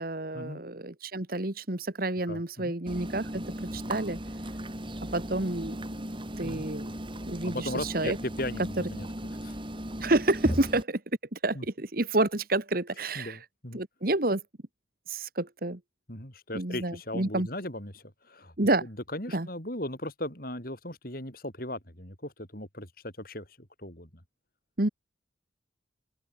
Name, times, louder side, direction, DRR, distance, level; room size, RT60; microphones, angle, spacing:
voice 1, 0.0-4.2 5.1-5.8 6.4-6.9 7.3-8.2 10.0-11.0 11.3-13.4 13.7-14.4 15.1-15.8 16.5-17.5 18.6-18.8 19.3-19.5 24.8-24.9, right 2 dB, 50° right, 1.6 m, -29 dB
voice 2, 2.3-2.7 6.4-6.7 7.4-9.1 9.4-9.6 10.5-10.6 11.5-11.7 13.1-13.8 16.1-18.5 18.8-24.1, left 1 dB, 50° left, 6.7 m, -37 dB
sound 1, 2.9-10.8, equal, 25° right, 4.1 m, -36 dB
open air
head